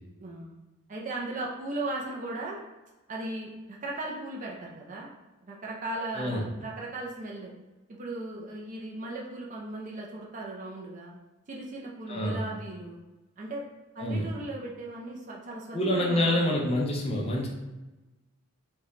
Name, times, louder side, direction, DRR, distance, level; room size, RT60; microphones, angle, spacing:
voice 1, 0.2-0.6 0.9-2.6 3.1-5.1 5.4-7.5 7.9-11.1 11.5-13.0 13.4-13.6 13.9-16.6, right 2 dB, 35° right, -2 dB, 0.4 m, -37 dB
voice 2, 6.2-6.5 12.1-12.4 14.0-14.3 15.7-17.5, left 1 dB, 25° left, -2 dB, 0.5 m, -27 dB
3.1 x 2.2 x 3.6 m, 1.1 s
head